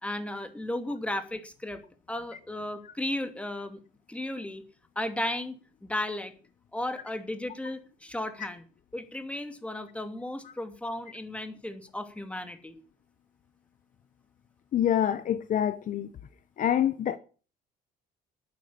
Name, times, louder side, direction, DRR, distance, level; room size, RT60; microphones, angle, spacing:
voice 1, 0.0-1.8 2.1-3.8 4.1-4.6 5.0-5.6 5.8-6.3 6.7-8.6 8.9-12.8, left 1 dB, 5° left, 2.7 m, -34 dB
voice 2, 14.7-16.1 16.6-17.2, left 10 dB, 50° left, 1.0 m, -26 dB
12.0 x 9.5 x 8.7 m
cardioid pair, 110°, 17 cm